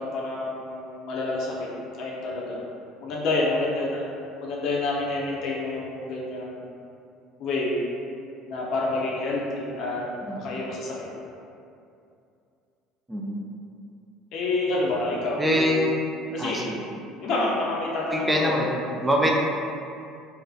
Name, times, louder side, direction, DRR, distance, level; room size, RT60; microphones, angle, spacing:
voice 1, 0.0-2.6 3.0-4.0 4.4-6.7 7.4-7.8 8.5-10.1 10.4-11.1 14.3-15.9 16.3-16.6 17.2-18.7, left 2 dB, 65° left, -4 dB, 0.5 m, -28 dB
voice 2, 13.1-13.4 15.4-15.9 16.4-16.8 18.1-19.4, equal, 15° right, -2 dB, 0.3 m, -24 dB
2.5 x 2.1 x 2.3 m, 2.5 s
supercardioid pair, 90°, 0 cm